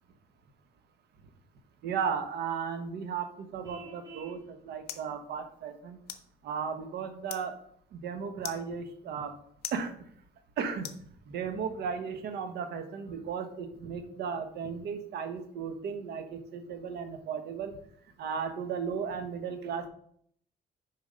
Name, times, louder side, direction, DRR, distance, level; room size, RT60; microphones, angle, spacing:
voice 1, 1.8-6.0 6.4-7.6 7.9-9.4 9.7-9.9 10.6-10.9 11.3-17.8 18.2-19.9, right 6 dB, 70° right, 8 dB, 1.2 m, -35 dB
Vehicle horn car horn honking, 3.6-4.4, right 5 dB, 20° right, 1.8 m, -47 dB
sound 1, 4.1-11.6, left 10 dB, 65° left, 0.8 m, -48 dB
6.8 x 4.9 x 5.2 m, 0.66 s
cardioid pair, 110°, 17 cm